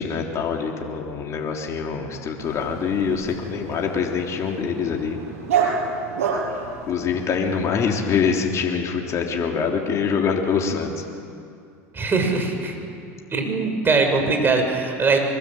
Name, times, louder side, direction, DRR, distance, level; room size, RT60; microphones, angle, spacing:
voice 1, 0.0-5.2 6.8-10.9, left 6 dB, 40° left, 1 dB, 3.3 m, -24 dB
Dog, 2.4-7.7, right 6 dB, 80° right, 6.9 m, -29 dB
voice 2, 11.9-12.7 13.3-15.2, right 4 dB, 30° right, 3 dB, 6.6 m, -21 dB
24.5 x 21.0 x 9.2 m, 2.4 s
hypercardioid pair, 90°, 8 cm